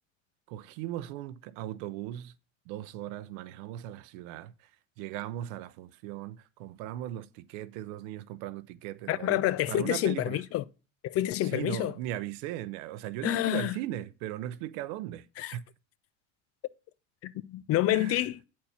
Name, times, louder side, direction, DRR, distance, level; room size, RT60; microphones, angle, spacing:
voice 1, 0.5-2.3 2.7-4.5 5.0-9.4 9.7-10.4 11.4-15.3 15.5-15.6 17.9-18.2, right 13 dB, 70° right, 0.6 m, -38 dB
voice 2, 9.1-10.6 11.0-11.9 13.2-13.8 15.4-15.5 17.2-18.4, left 14 dB, 40° left, 0.4 m, -28 dB
8.5 x 4.4 x 5.5 m
supercardioid pair, 90°, 36 cm